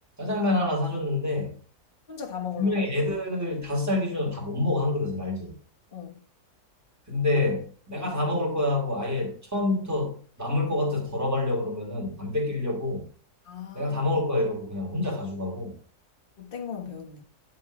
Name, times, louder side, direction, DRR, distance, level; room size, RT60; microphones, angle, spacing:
voice 1, 0.2-1.6 2.5-5.6 7.1-13.1 13.7-15.7, left 2 dB, 10° right, 2.4 m, -27 dB
voice 2, 2.1-2.9 5.9-6.1 13.4-14.1 16.4-17.2, left 7 dB, 35° left, 1.6 m, -37 dB
9.8 x 4.4 x 5.0 m
omnidirectional pair, 1.6 m